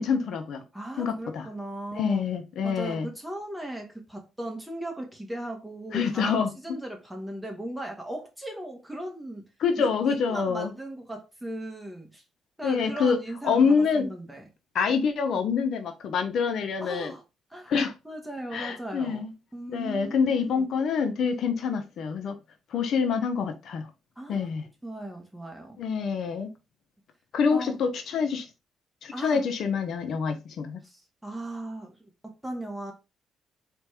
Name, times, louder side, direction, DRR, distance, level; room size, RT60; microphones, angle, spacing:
voice 1, 0.0-0.6 1.0-1.5 2.0-3.1 5.9-6.5 9.6-10.7 12.6-13.2 13.4-14.1 14.7-17.1 17.7-17.9 18.5-19.3 19.7-22.4 22.7-23.9 24.3-24.6 25.8-26.5 27.3-28.5 29.0-30.8, left 5 dB, 70° left, 0.7 m, -26 dB
voice 2, 0.7-2.2 2.6-9.4 9.8-12.2 12.6-14.4 16.8-17.2 17.5-17.7 18.0-20.7 24.2-24.5 24.8-25.8 27.5-27.8 29.1-29.4 30.8-32.9, right 1 dB, 5° right, 1.3 m, -37 dB
4.1 x 3.2 x 3.4 m
cardioid pair, 90°, 0 cm